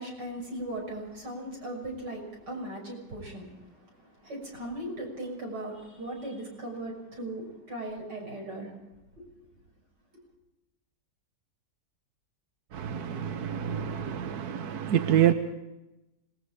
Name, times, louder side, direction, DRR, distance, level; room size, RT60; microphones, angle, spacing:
voice 1, 0.0-3.5 4.2-8.7 9.2-9.3, right 1 dB, 90° right, 6.9 m, -38 dB
voice 2, 12.7-15.3, right 10 dB, 70° right, 1.4 m, -27 dB
26.5 x 20.0 x 5.0 m
omnidirectional pair, 1.8 m